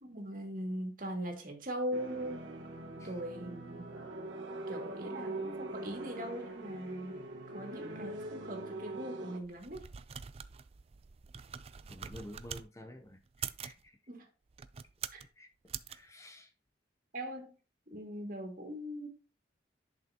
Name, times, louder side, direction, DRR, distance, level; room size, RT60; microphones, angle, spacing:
voice 1, 0.0-2.5 3.0-3.9 4.7-7.2 7.5-9.9 14.1-14.3 15.1-15.2 17.1-17.6 17.9-19.1, equal, 50° right, 2 dB, 2.2 m, -40 dB
sound 1, 1.9-9.4, right 2 dB, 90° right, 1.4 m, -42 dB
sound 2, 9.4-12.7 13.3-13.8 14.5-15.3 15.7-16.0, right 8 dB, 35° right, 0.4 m, -44 dB
voice 2, 11.9-14.0 15.4-15.5 15.9-16.5, left 1 dB, 15° left, 6 dB, 0.6 m, -51 dB
10.5 x 6.0 x 2.8 m, 0.35 s
head